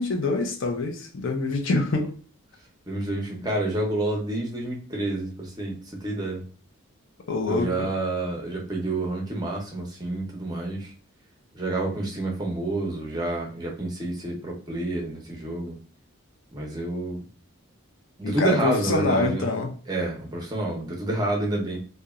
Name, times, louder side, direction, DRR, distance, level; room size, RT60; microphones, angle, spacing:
voice 1, 0.0-2.1 7.3-7.9 18.2-19.7, left 3 dB, 60° left, 0.5 m, -25 dB
voice 2, 2.9-6.4 7.5-10.9 11.5-15.8 16.5-17.2 18.2-19.5 19.9-21.8, right 2 dB, 20° right, 0.6 m, -29 dB
2.8 x 2.1 x 2.3 m
head